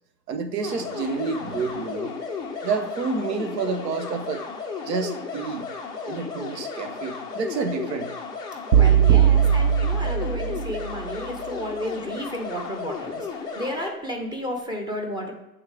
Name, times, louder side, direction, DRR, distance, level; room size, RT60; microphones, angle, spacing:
voice 1, 0.3-2.1 2.6-4.4 4.8-5.7 6.1-8.1, right 4 dB, 85° right, 8 dB, 0.9 m, -29 dB
sound 1, 0.6-13.9, left 5 dB, 10° left, 0.3 m, -34 dB
voice 2, 8.7-15.3, equal, 10° right, 3 dB, 0.8 m, -32 dB
sound 2, 8.7-10.9, right 9 dB, 45° right, 0.7 m, -19 dB
8.2 x 3.7 x 3.3 m, 0.96 s
hypercardioid pair, 115°, 48 cm